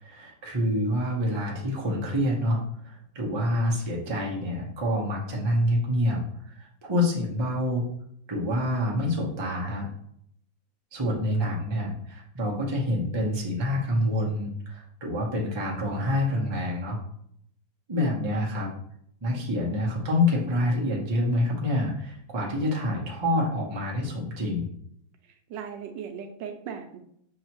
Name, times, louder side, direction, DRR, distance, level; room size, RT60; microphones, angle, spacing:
voice 1, 0.0-6.2 6.5-7.8 8.3-9.9 10.9-17.0 17.9-18.7 19.2-24.7, left 1 dB, 25° right, -2 dB, 0.6 m, -27 dB
voice 2, 25.2-27.0, right 7 dB, 80° right, 6 dB, 1.2 m, -38 dB
6.4 x 2.7 x 3.0 m, 0.69 s
omnidirectional pair, 2.0 m